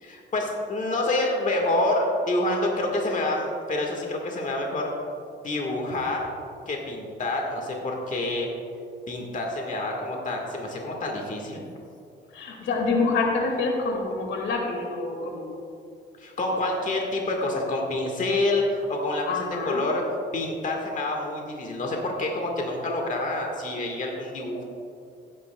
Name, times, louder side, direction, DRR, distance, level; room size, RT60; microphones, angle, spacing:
voice 1, 0.0-4.9 5.4-6.3 6.7-8.5 9.1-11.6 16.2-20.0 20.3-24.6, left 2 dB, 40° left, 0 dB, 1.6 m, -27 dB
voice 2, 12.3-15.5 19.2-19.8, left 3 dB, 75° left, 1 dB, 2.0 m, -26 dB
15.5 x 9.4 x 2.3 m, 2.5 s
cardioid pair, 90°, 20 cm